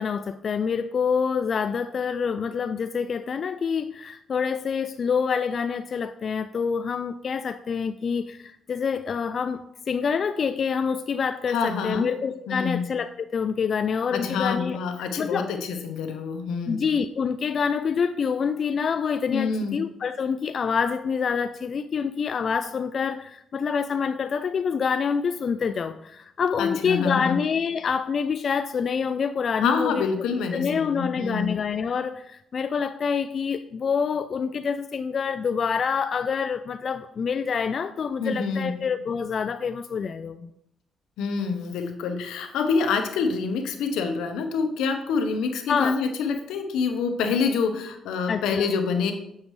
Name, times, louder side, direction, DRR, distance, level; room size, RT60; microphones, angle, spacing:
voice 1, 0.0-9.6 9.9-14.8 15.2-15.5 16.7-30.0 30.5-40.5 45.7-46.0 48.3-48.6, left 6 dB, 50° left, 10 dB, 0.3 m, -26 dB
voice 2, 11.5-12.1 12.5-12.8 14.1-16.8 19.3-19.8 26.6-27.4 29.6-31.6 38.2-38.7 41.2-49.1, left 5 dB, 90° left, 6 dB, 0.9 m, -26 dB
7.3 x 6.5 x 3.1 m, 0.77 s
cardioid pair, 90°, 0 cm